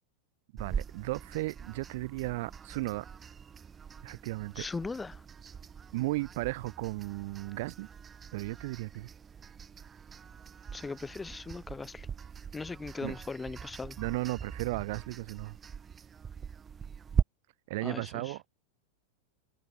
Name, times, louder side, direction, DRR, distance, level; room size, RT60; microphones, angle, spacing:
voice 1, 0.5-3.0 4.0-4.6 5.9-7.9 8.3-9.1 13.0-13.1 14.0-15.6 17.7-18.4, right 21 dB, 50° right, 1.6 m, -35 dB
sound 1, 0.6-17.2, right 7 dB, 20° right, 2.7 m, -41 dB
voice 2, 4.5-5.3 10.7-12.1 12.5-14.0 17.8-18.4, left 4 dB, 10° left, 4.2 m, -39 dB
figure-of-eight pair, 90°, 0 cm